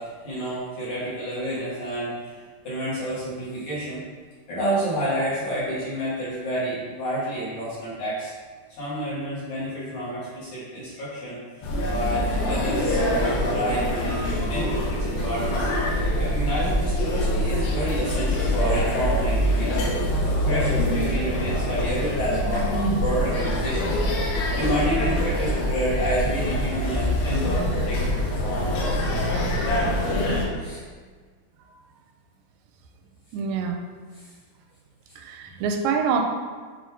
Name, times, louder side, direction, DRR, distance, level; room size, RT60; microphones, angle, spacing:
voice 1, 0.0-2.4 2.6-4.0 4.5-8.3 8.8-15.7 16.2-19.9 20.5-28.1 28.4-29.6 30.6-30.8 34.1-34.3 35.5-35.6, right 1 dB, 55° left, -10 dB, 2.7 m, -29 dB
sound 1, 11.6-30.4, left 1 dB, 70° left, 2.4 m, -24 dB
voice 2, 33.3-33.8 35.2-36.2, right 6 dB, 85° right, 4 dB, 2.7 m, -25 dB
7.5 x 3.9 x 3.6 m, 1.5 s
omnidirectional pair, 4.8 m